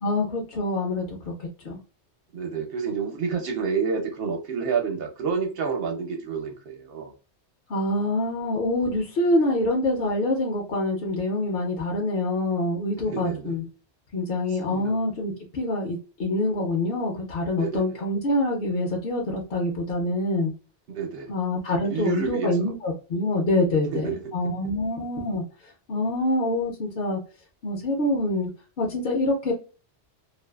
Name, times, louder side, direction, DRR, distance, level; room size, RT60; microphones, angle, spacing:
voice 1, 0.0-1.8 7.7-13.6 14.1-20.5 21.3-27.2 27.6-28.5 28.8-29.5, left 1 dB, 60° left, 0.7 m, -26 dB
voice 2, 2.3-7.1 13.1-13.6 14.7-14.9 17.6-17.8 20.9-21.3 21.8-22.7 23.9-24.2, right 5 dB, 60° right, 0.9 m, -29 dB
2.4 x 2.3 x 2.2 m
omnidirectional pair, 1.1 m